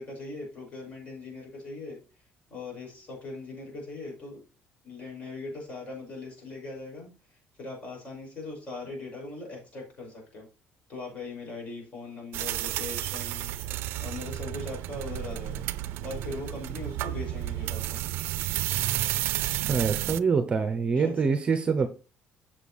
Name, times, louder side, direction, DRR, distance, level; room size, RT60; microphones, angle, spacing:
voice 1, 0.0-2.0 2.5-4.4 4.8-7.1 7.6-10.5 10.9-13.7 14.0-18.0 20.9-21.2, left 3 dB, 35° left, -1 dB, 5.5 m, -40 dB
sound 1, 12.3-20.2, right 14 dB, 75° right, 0.5 m, -31 dB
voice 2, 19.6-21.9, right 5 dB, 25° right, 9 dB, 0.8 m, -25 dB
7.7 x 6.8 x 4.2 m, 0.34 s
cardioid pair, 150°, 4 cm